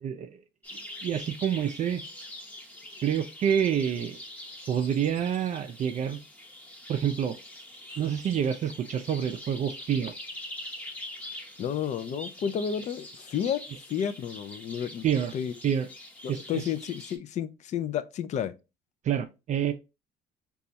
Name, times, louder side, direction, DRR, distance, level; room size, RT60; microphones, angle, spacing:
voice 1, 0.0-0.4 1.0-2.0 3.0-4.2 4.7-6.2 6.9-7.4 8.0-10.1 15.0-15.3 15.6-15.9 16.3-16.6 19.0-19.7, right 9 dB, 45° right, 0.4 m, -27 dB
sound 1, 0.6-17.2, left 1 dB, 10° left, 0.7 m, -44 dB
voice 2, 11.6-13.6 13.9-15.1 15.3-15.5 16.2-18.5, left 8 dB, 45° left, 0.4 m, -31 dB
3.9 x 2.3 x 2.7 m
cardioid pair, 110°, 17 cm